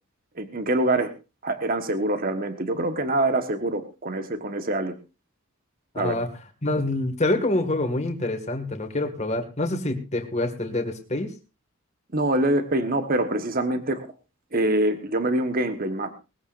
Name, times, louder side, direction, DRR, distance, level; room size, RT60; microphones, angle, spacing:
voice 1, 0.3-1.1 1.4-4.9 5.9-6.1 12.1-14.1 14.5-16.1, right 1 dB, 40° right, 8 dB, 1.3 m, -25 dB
voice 2, 5.9-6.3 6.6-11.3, left 2 dB, 30° left, 6 dB, 1.9 m, -26 dB
20.0 x 15.0 x 2.6 m, 0.29 s
head